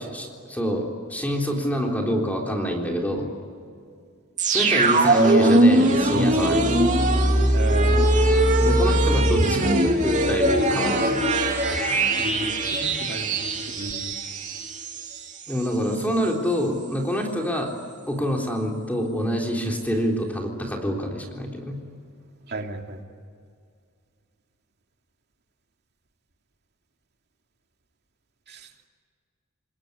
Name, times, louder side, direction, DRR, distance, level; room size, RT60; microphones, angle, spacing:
voice 1, 0.1-3.3 4.5-6.7 8.6-11.2 15.5-17.7 18.1-21.8, equal, 10° left, 1 dB, 3.7 m, -26 dB
sound 1, 4.4-15.2 15.5-15.6, right 1 dB, 35° right, 2.9 m, -21 dB
voice 2, 7.5-8.1 12.2-14.1 22.5-23.0 28.5-28.7, right 2 dB, 50° right, 3 dB, 2.6 m, -34 dB
28.0 x 20.5 x 9.8 m, 2.2 s
head